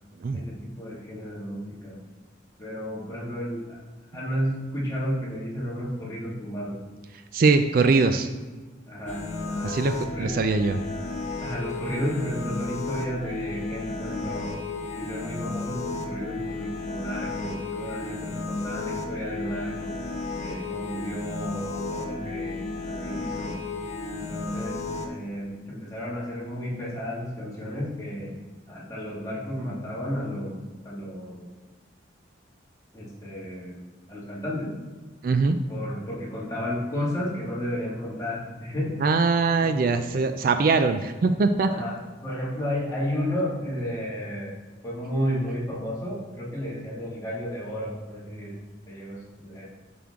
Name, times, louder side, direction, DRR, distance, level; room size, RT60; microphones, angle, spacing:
voice 1, 0.3-2.0 2.6-3.8 4.1-6.8 8.9-10.3 11.4-14.6 15.0-20.0 20.4-23.6 24.1-28.4 28.7-30.6 30.8-31.5 32.9-34.8 35.7-38.9 39.6-39.8 41.7-44.6 44.8-48.5 48.9-49.7, equal, 20° left, -7 dB, 2.0 m, -32 dB
voice 2, 7.3-8.3 9.6-9.9 10.2-10.8 35.2-35.6 39.0-41.7, right 4 dB, 50° right, 8 dB, 0.3 m, -21 dB
sound 1, 9.1-25.1, left 3 dB, 40° left, 0.7 m, -33 dB
7.3 x 6.1 x 3.6 m, 1.3 s
head